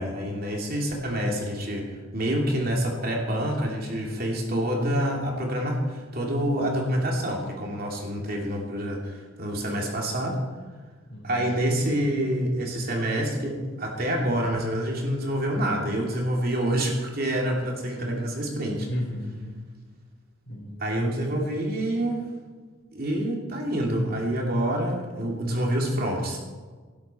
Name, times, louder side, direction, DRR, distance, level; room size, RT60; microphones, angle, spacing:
voice 1, 0.0-10.4 11.2-18.9 20.8-22.2 22.9-26.4, right 1 dB, 45° right, -1 dB, 3.0 m, -27 dB
voice 2, 11.1-12.1 18.9-19.5 20.5-21.4, left 1 dB, 50° left, 0 dB, 4.5 m, -35 dB
18.5 x 12.0 x 4.6 m, 1.4 s
head